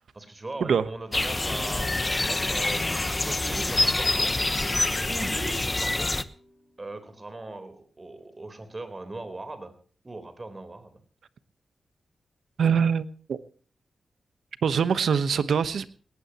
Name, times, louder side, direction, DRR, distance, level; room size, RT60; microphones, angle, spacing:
voice 1, 0.1-4.3 5.1-6.2 6.8-9.7 10.0-11.0, right 2 dB, 30° right, 10 dB, 3.9 m, -39 dB
sound 1, 1.1-6.2, left 2 dB, 25° left, 1.0 m, -26 dB
sound 2, 1.1-7.5, equal, ahead, 7.5 m, -51 dB
voice 2, 12.6-13.4 14.6-15.9, right 6 dB, 80° right, 13 dB, 1.1 m, -24 dB
20.0 x 18.0 x 3.0 m, 0.42 s
cardioid pair, 85°, 0 cm